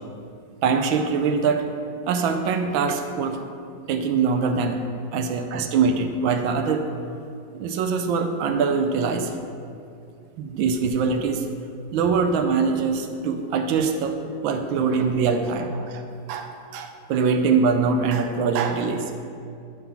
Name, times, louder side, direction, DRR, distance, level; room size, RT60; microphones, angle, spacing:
voice 1, 0.6-1.7 2.0-3.4 3.9-4.8 5.1-6.8 7.5-9.4 10.4-11.5 11.9-14.2 14.4-16.0 16.3-19.1, right 5 dB, 85° right, 6 dB, 1.4 m, -23 dB
10.5 x 3.7 x 5.7 m, 2.4 s
omnidirectional pair, 2.1 m